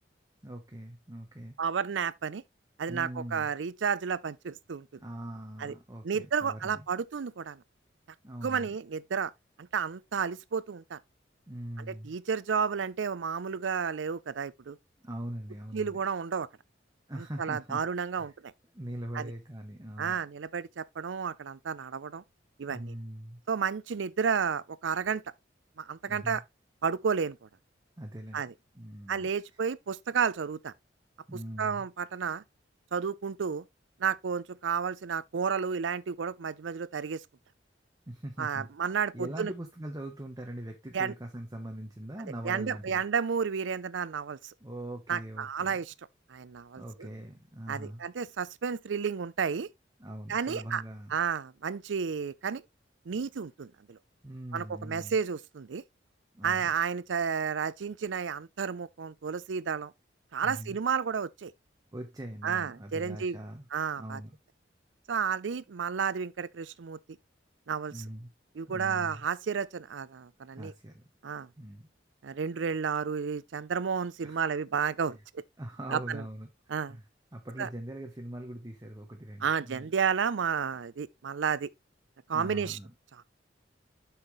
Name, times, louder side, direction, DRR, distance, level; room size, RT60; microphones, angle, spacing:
voice 1, 0.4-1.6 2.9-3.5 5.0-6.8 8.2-8.7 11.5-12.1 15.0-16.0 17.1-17.8 18.2-18.3 18.7-20.2 22.7-23.4 26.1-26.4 28.0-28.4 28.7-29.3 31.3-31.9 38.1-38.7 39.1-43.0 44.6-45.8 46.8-48.0 50.0-51.1 54.2-55.1 56.3-56.7 60.4-60.8 61.9-63.7 63.9-64.4 67.9-68.3 68.7-69.2 70.5-71.0 71.6-71.9 74.2-74.4 75.1-75.2 75.6-77.0 77.3-79.9 82.3-82.9, right 1 dB, 20° right, 1.1 m, -41 dB
voice 2, 1.6-2.4 2.8-4.9 5.6-5.7 6.0-7.6 8.4-9.3 9.6-11.0 11.8-14.8 15.7-16.5 17.2-18.5 19.1-19.3 20.0-22.2 22.6-23.0 23.5-25.2 25.8-26.4 26.8-27.5 28.3-28.5 29.1-30.7 31.6-32.4 32.9-33.7 34.0-37.2 38.4-39.5 40.9-41.1 42.4-44.5 45.1-45.9 46.3-47.1 47.7-49.7 50.3-50.8 51.1-52.6 53.1-54.0 54.5-55.8 56.4-59.9 60.3-61.5 62.4-63.4 63.7-64.2 65.1-67.0 67.7-68.0 68.6-70.7 71.2-71.5 72.2-75.2 75.9-76.2 76.7-77.0 77.6-77.7 79.4-81.7 82.3-82.8, right 6 dB, 90° right, 0.5 m, -31 dB
8.0 x 5.7 x 3.1 m
head